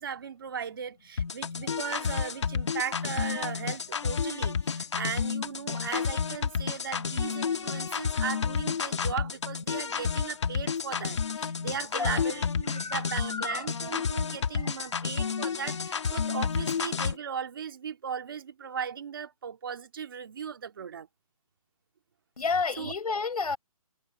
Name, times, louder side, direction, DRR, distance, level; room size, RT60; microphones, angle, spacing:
voice 1, 0.0-21.1 22.8-22.9, right 7 dB, 35° right, 2.0 m, -37 dB
sound 1, 1.2-17.2, left 6 dB, 50° left, 1.6 m, -30 dB
voice 2, 12.7-13.7 22.4-23.6, left 4 dB, 85° left, 5.5 m, -31 dB
hypercardioid pair, 175°, 19 cm